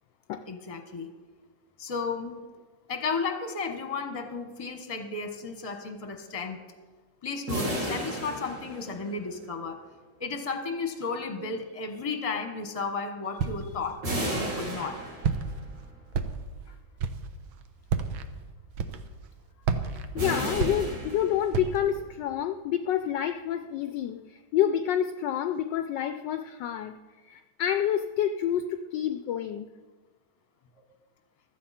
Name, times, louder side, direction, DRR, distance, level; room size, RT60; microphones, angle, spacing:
voice 1, 0.5-1.1 1.8-2.4 2.9-6.6 7.2-9.8 10.2-14.0 14.3-15.0, left 4 dB, 20° left, 5 dB, 1.1 m, -33 dB
sound 1, 7.5-9.4 14.0-15.7 20.2-21.8, right 1 dB, 60° right, 4.0 m, -33 dB
Walk footsteps, 13.4-13.8 14.3-14.9 15.2-15.7 16.1-16.6 17.0-17.3 17.8-18.3 18.7-19.3 19.6-21.2 21.5-21.9, right 5 dB, 80° right, 1.7 m, -30 dB
voice 2, 19.9-26.9 27.2-29.7, left 10 dB, 75° left, 9 dB, 1.1 m, -28 dB
15.5 x 13.5 x 4.3 m, 1.4 s
omnidirectional pair, 2.3 m